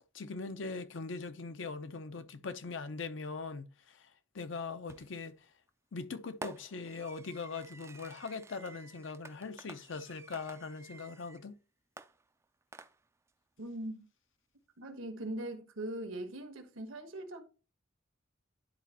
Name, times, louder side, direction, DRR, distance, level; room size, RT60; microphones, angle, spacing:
voice 1, 0.1-5.3 5.9-11.6, left 4 dB, 65° left, 0.6 m, -41 dB
Fireworks, 4.9-5.3 6.4-11.5 12.0-13.3, right 3 dB, 15° right, 0.3 m, -51 dB
voice 2, 13.6-14.1 14.8-17.4, right 1 dB, 85° right, 1.3 m, -41 dB
10.5 x 4.1 x 2.8 m
head